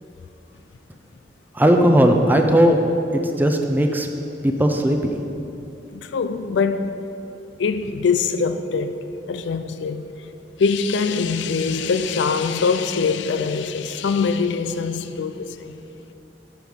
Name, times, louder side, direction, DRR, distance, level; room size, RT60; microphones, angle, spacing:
voice 1, 1.6-2.8 3.1-4.1 4.4-5.1, equal, 10° right, 0.5 m, -17 dB
voice 2, 5.9-7.0 7.6-10.1 10.6-15.8, left 5 dB, 80° left, 0.4 m, -23 dB
7.8 x 6.5 x 5.2 m
head